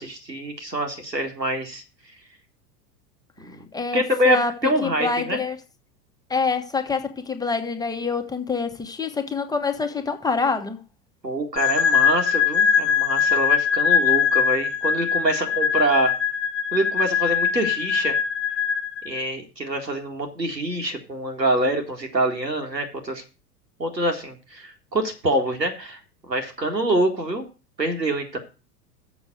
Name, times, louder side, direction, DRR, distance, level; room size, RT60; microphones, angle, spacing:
voice 1, 0.0-1.8 3.4-3.6 3.9-5.4 11.2-16.1 16.7-18.2 19.1-23.2 23.8-26.0 26.3-27.5 27.8-28.4, right 1 dB, 90° right, 1.9 m, -25 dB
voice 2, 3.7-4.5 4.8-5.6 6.3-10.8, left 4 dB, 10° left, 1.1 m, -26 dB
sound 1, 11.6-19.2, left 7 dB, 50° left, 1.1 m, -22 dB
7.1 x 6.1 x 7.7 m
figure-of-eight pair, 85°, 49 cm